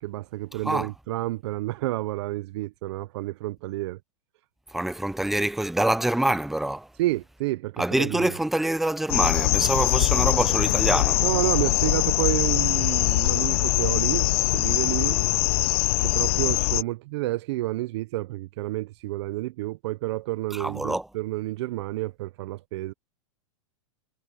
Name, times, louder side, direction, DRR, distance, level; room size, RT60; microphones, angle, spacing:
voice 1, 0.0-4.0 7.0-8.3 11.2-14.3 14.5-15.2 16.0-22.9, right 18 dB, 60° right, 0.6 m, -30 dB
voice 2, 4.7-6.9 7.8-11.2 20.5-21.1, right 1 dB, ahead, 0.6 m, -25 dB
sound 1, 9.1-16.8, left 21 dB, 50° left, 0.7 m, -22 dB
supercardioid pair, 145°, 16 cm